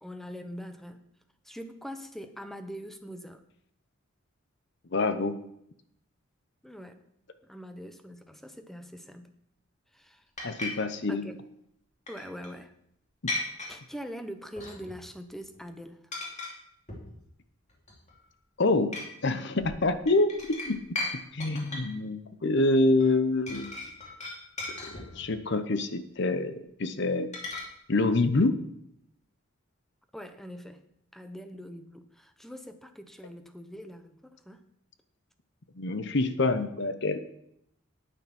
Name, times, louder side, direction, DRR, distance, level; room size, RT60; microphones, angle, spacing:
voice 1, 0.0-1.0 1.4-3.4 6.6-7.0 7.5-9.3 9.9-10.2 11.1-11.4 12.1-12.7 13.7-16.0 30.1-30.8 31.1-34.6, equal, ahead, 8 dB, 0.8 m, -43 dB
voice 2, 4.9-5.4 10.4-11.3 13.2-13.3 18.6-20.8 21.1-23.9 25.1-27.3 27.9-28.6 35.8-37.2, left 2 dB, 55° left, 11 dB, 0.8 m, -26 dB
sound 1, 10.4-10.7 12.1-12.5 13.3-13.8 14.6-15.1 15.3-15.6 16.1-16.5 16.9-17.2 17.7-18.2 18.9-19.1 19.6-21.1 21.4-21.9 23.0-23.1 23.5-25.3 27.3-27.6, left 2 dB, 35° left, 2.6 m, -36 dB
9.5 x 8.9 x 6.0 m, 0.74 s
head